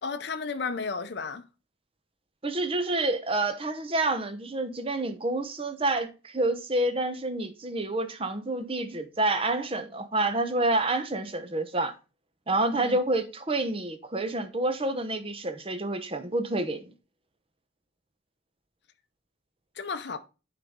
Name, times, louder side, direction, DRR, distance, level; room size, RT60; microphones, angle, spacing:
voice 1, 0.0-1.5 12.7-13.0 19.8-20.2, left 4 dB, 60° left, 0.5 m, -33 dB
voice 2, 2.4-11.9 12.5-16.9, right 2 dB, 30° right, 0.8 m, -28 dB
9.8 x 3.9 x 3.6 m
head